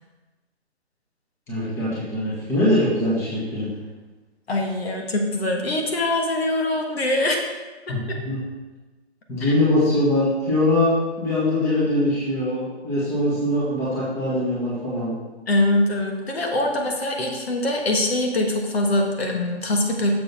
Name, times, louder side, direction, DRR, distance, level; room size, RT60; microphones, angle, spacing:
voice 1, 1.5-3.7 7.9-8.4 9.3-15.1, left 1 dB, 5° left, -8 dB, 1.4 m, -22 dB
voice 2, 4.5-7.4 7.9-8.2 9.4-9.5 15.5-20.2, left 1 dB, 65° left, 1 dB, 1.5 m, -23 dB
6.9 x 6.3 x 4.3 m, 1.2 s
hypercardioid pair, 160°, 33 cm